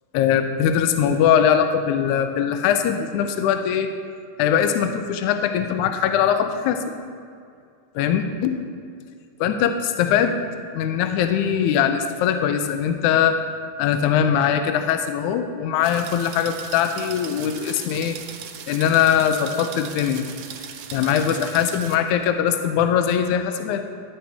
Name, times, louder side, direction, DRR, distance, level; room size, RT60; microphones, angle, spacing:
voice 1, 0.1-3.9 4.4-6.8 8.0-8.6 9.4-10.5 10.7-13.4 13.8-18.2 18.7-20.2 20.9-23.8, left 8 dB, 80° left, 7 dB, 2.0 m, -21 dB
sound 1, 15.8-22.0, right 8 dB, 80° right, 2.1 m, -38 dB
11.5 x 11.0 x 3.5 m, 2.3 s
omnidirectional pair, 3.6 m